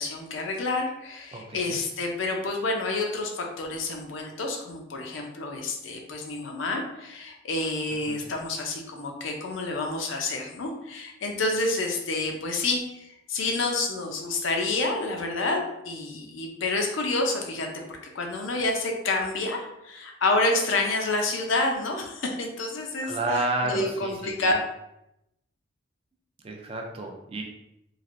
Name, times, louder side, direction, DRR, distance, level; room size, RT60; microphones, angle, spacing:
voice 1, 0.0-17.7 18.1-23.2 23.6-24.5, left 2 dB, 75° left, 2 dB, 0.5 m, -28 dB
voice 2, 1.3-1.8 8.1-8.2 23.0-24.6 26.4-27.4, right 2 dB, 30° right, 1 dB, 0.3 m, -31 dB
3.2 x 2.4 x 2.5 m, 0.84 s
head